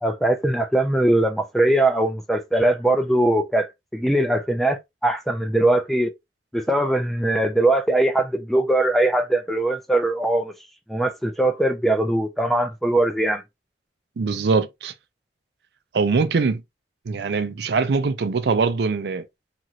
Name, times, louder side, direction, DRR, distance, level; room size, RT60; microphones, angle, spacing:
voice 1, 0.0-6.1 6.5-10.5 10.9-13.4, right 1 dB, ahead, 0.3 m, -21 dB
voice 2, 14.2-14.9 15.9-16.6 17.1-19.2, right 4 dB, 75° right, 0.4 m, -22 dB
2.9 x 2.5 x 2.8 m
head